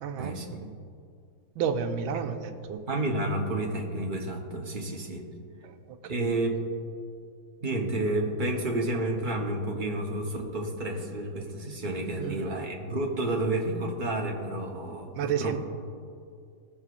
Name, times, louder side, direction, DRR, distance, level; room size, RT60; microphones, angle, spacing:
voice 1, 0.0-0.7 1.6-2.8 5.6-6.3 12.2-12.6 15.2-15.6, right 7 dB, 85° right, 7 dB, 1.5 m, -32 dB
voice 2, 2.9-5.3 6.0-6.6 7.6-15.6, right 1 dB, 40° right, 0 dB, 0.7 m, -30 dB
17.5 x 7.0 x 2.4 m, 2.3 s
omnidirectional pair, 2.2 m